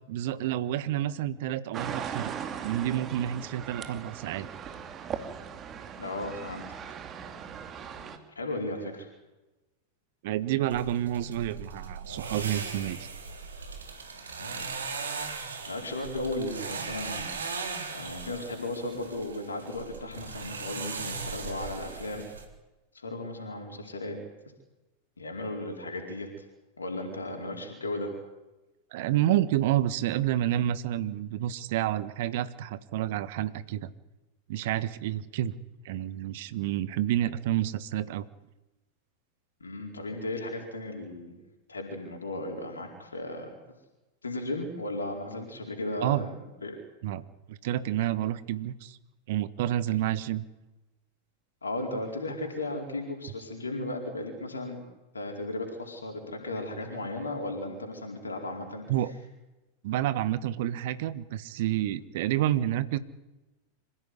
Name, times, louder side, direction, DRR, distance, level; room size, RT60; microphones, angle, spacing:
voice 1, 0.1-2.3 2.6-4.5 10.2-13.1 28.9-33.9 34.5-35.5 35.8-38.2 46.0-46.2 47.0-47.2 47.5-49.0 49.3-50.4 58.9-59.1 59.8-63.0, right 12 dB, 50° right, 15 dB, 1.4 m, -29 dB
sound 1, 1.7-8.2, right 7 dB, 25° right, 2.6 m, -39 dB
voice 2, 6.0-7.0 8.3-9.1 14.4-14.7 15.7-17.6 17.9-22.2 22.9-24.2 25.2-26.4 26.8-28.1 39.6-41.4 41.7-43.5 44.2-46.3 46.6-46.8 51.6-54.8 55.1-58.8, left 2 dB, 75° left, 2 dB, 4.6 m, -35 dB
sound 2, 10.7-22.5, right 4 dB, 70° right, 3.6 m, -38 dB
26.0 x 16.0 x 9.7 m, 1.1 s
figure-of-eight pair, 90°, 0 cm